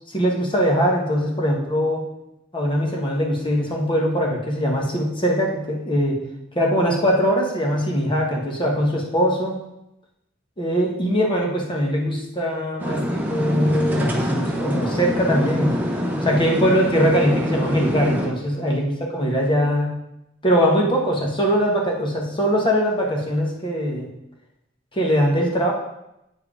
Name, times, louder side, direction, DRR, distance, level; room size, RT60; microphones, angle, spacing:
voice 1, 0.1-2.0 2.5-6.2 6.5-9.5 10.6-15.7 16.2-19.9 20.4-24.1 24.9-25.7, equal, 25° left, -1 dB, 1.5 m, -21 dB
sound 1, 12.8-18.3, equal, 10° right, 1.1 m, -25 dB
8.6 x 4.8 x 4.9 m, 0.85 s
head